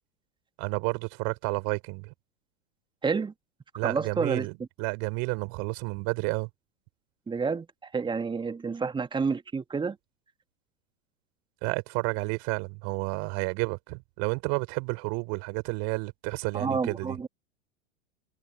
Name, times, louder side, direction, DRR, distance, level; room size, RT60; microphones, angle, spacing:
voice 1, 0.6-2.1 3.8-6.5 11.6-17.2, right 37 dB, 45° right, 5.5 m, -31 dB
voice 2, 3.0-3.3 3.8-4.5 7.3-10.0 16.5-17.3, right 5 dB, 10° right, 1.8 m, -29 dB
hypercardioid pair, 100°, 39 cm